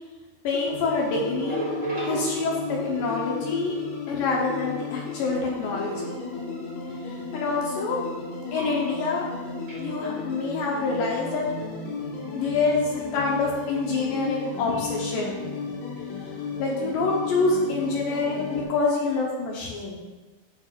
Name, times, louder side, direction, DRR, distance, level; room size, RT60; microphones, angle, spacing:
voice 1, 0.4-1.7 2.0-3.8 4.1-6.1 7.3-8.0 8.5-9.2 9.8-11.4 12.3-15.4 16.6-20.0, left 3 dB, 75° left, -2 dB, 2.2 m, -26 dB
sound 1, 0.5-18.6, left 4 dB, 90° left, 3.7 m, -34 dB
sound 2, 0.8-3.0 5.3-6.6 8.6-9.2 9.7-9.9, right 1 dB, 30° right, 0.8 m, -35 dB
11.0 x 6.6 x 2.4 m, 1.3 s
omnidirectional pair, 4.8 m